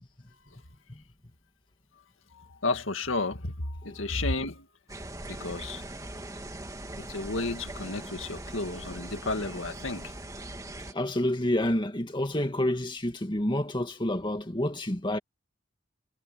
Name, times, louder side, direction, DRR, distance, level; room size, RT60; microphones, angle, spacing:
voice 1, 2.3-4.7 5.3-5.8 7.0-10.1, left 2 dB, 85° left, 2.2 m, -32 dB
sound 1, 4.9-10.9, right 1 dB, 15° right, 2.3 m, -41 dB
voice 2, 10.9-15.2, left 1 dB, 25° left, 2.1 m, -28 dB
head